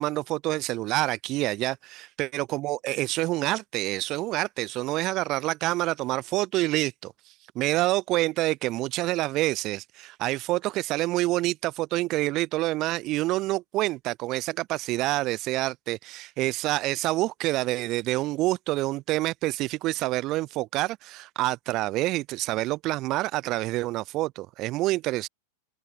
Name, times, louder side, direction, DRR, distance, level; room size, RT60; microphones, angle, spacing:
voice 1, 0.0-7.1 7.5-25.3, right 18 dB, 25° right, 0.9 m, -27 dB
open air
supercardioid pair, 180°, 0 cm